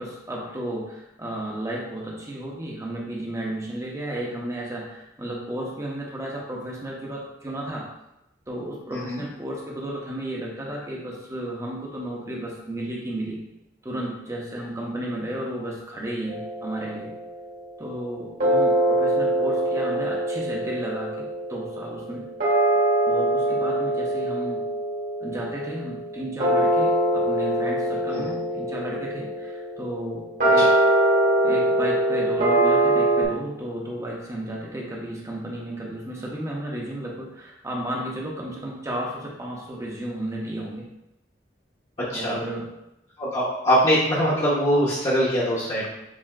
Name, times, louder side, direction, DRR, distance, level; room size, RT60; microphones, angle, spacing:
voice 1, 0.0-7.9 8.5-13.4 13.8-17.1 17.8-22.3 23.1-24.6 25.2-30.8 31.4-40.9 42.1-42.7 45.6-45.9, right 1 dB, 15° right, -2 dB, 0.8 m, -33 dB
voice 2, 8.9-9.2 28.1-28.3 42.1-42.4 43.2-45.9, equal, 30° left, -10 dB, 1.0 m, -22 dB
sound 1, 16.3-17.6 18.4-33.2, right 1 dB, 55° right, 1.7 m, -23 dB
7.2 x 2.8 x 2.4 m, 0.87 s
head